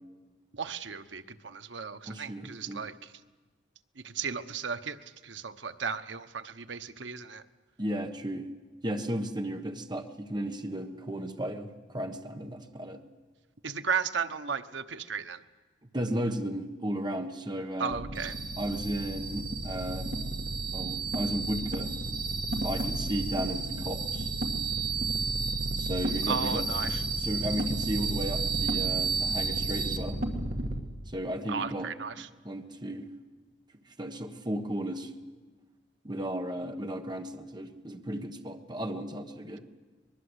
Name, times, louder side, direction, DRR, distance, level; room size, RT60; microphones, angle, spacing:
voice 1, 0.5-3.0 4.0-7.4 13.6-15.4 17.8-18.3 26.3-27.0 31.5-32.3, right 6 dB, 85° right, 10 dB, 1.0 m, -35 dB
voice 2, 2.1-2.8 7.8-8.5 8.8-13.0 15.9-18.0 18.6-20.1 20.7-21.9 22.6-24.3 25.8-30.2 31.1-33.1 34.0-35.1 36.0-39.6, equal, 25° right, 6 dB, 1.3 m, -34 dB
sound 1, 17.9-30.8, right 3 dB, 55° right, 2.3 m, -31 dB
23.0 x 22.0 x 8.1 m, 1.4 s
head